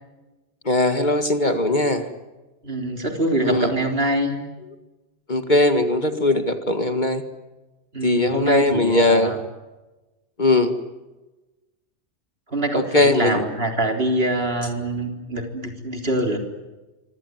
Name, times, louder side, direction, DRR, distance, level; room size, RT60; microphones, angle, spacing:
voice 1, 0.7-2.1 3.4-3.7 5.3-7.2 8.0-9.4 10.4-10.7 12.7-13.4, left 2 dB, 40° left, 8 dB, 2.1 m, -19 dB
voice 2, 2.6-4.4 7.9-9.4 12.5-16.4, right 1 dB, 55° right, 4 dB, 4.1 m, -24 dB
25.0 x 25.0 x 9.4 m, 1.1 s
omnidirectional pair, 1.2 m